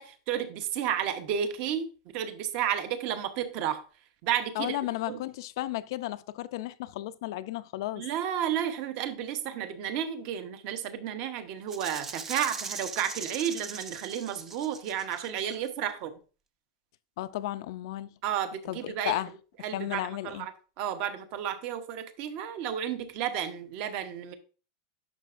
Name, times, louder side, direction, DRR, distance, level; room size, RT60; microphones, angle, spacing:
voice 1, 0.0-3.8 4.2-4.8 5.1-5.2 8.0-16.1 18.2-19.2 19.6-20.5 20.8-24.3, right 9 dB, 40° right, 0.9 m, -32 dB
voice 2, 4.6-8.0 17.2-18.1 18.7-19.3 19.7-20.5, left 15 dB, 55° left, 0.4 m, -34 dB
Rattle (instrument), 11.7-15.5, right 5 dB, 15° right, 0.4 m, -40 dB
11.0 x 5.9 x 2.5 m
supercardioid pair, 175°, 3 cm